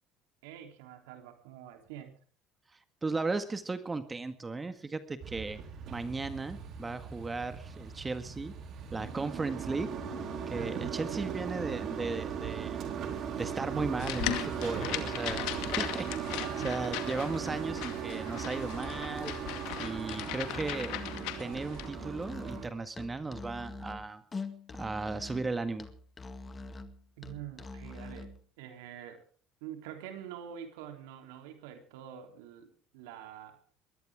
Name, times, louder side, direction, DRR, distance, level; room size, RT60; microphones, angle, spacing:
voice 1, 0.4-2.2 10.6-11.3 16.4-16.9 27.2-29.2 29.6-33.6, right 10 dB, 85° right, 6 dB, 3.3 m, -46 dB
voice 2, 3.0-5.6 5.9-8.5 8.9-9.9 10.5-12.8 13.4-15.4 15.8-19.3 19.8-21.0 21.4-24.2 24.8-25.9, right 3 dB, 20° right, 10 dB, 1.8 m, -36 dB
sound 1, 5.2-22.7, right 7 dB, 55° right, 4.2 m, -38 dB
sound 2, 14.0-21.9, left 14 dB, 75° left, 2.2 m, -38 dB
Musical instrument, 20.4-28.4, left 3 dB, 25° left, 2.0 m, -44 dB
22.0 x 16.5 x 3.6 m, 0.40 s
supercardioid pair, 90°, 0 cm